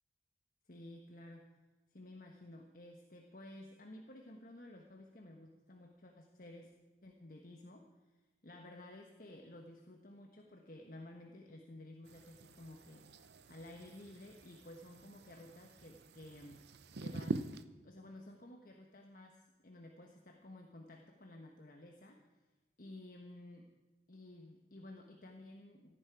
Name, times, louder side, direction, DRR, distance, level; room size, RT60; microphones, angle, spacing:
voice 1, 0.7-1.5 1.9-6.8 7.0-7.9 8.4-16.7 17.0-17.5 17.8-22.2 22.8-23.7 24.1-25.9, left 1 dB, 50° left, 2 dB, 1.3 m, -53 dB
sound 1, 12.1-17.6, right 2 dB, 65° right, 0.7 m, -45 dB
17.5 x 14.0 x 4.8 m, 1.2 s
head